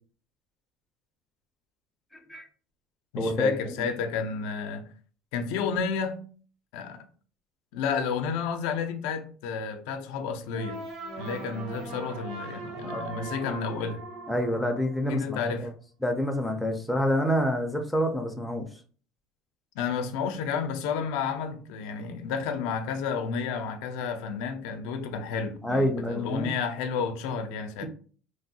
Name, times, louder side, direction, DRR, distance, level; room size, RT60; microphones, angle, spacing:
voice 1, 2.1-2.5 3.2-3.9 12.7-13.5 14.3-15.7 16.0-18.7 25.6-26.5 27.8-27.9, equal, ahead, 0.4 m, -28 dB
voice 2, 3.1-4.9 5.3-6.3 6.7-7.0 7.7-10.9 11.2-14.0 15.1-15.7 19.7-27.9, left 5 dB, 80° left, 0.4 m, -31 dB
sound 1, 10.5-15.5, right 2 dB, 55° right, 0.7 m, -40 dB
3.1 x 2.2 x 2.6 m
cardioid pair, 155°, 0 cm